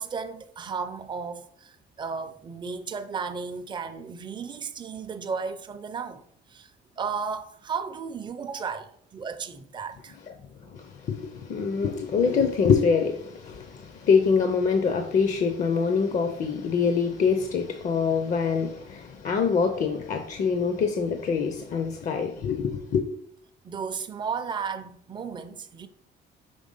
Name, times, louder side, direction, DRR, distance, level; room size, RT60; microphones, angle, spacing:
voice 1, 0.0-6.2 6.5-6.7 7.0-10.2 23.6-25.9, right 5 dB, 25° right, 0.5 m, -34 dB
voice 2, 10.7-23.1, left 5 dB, 40° left, 0.6 m, -25 dB
5.2 x 3.3 x 5.4 m
cardioid pair, 135°, 19 cm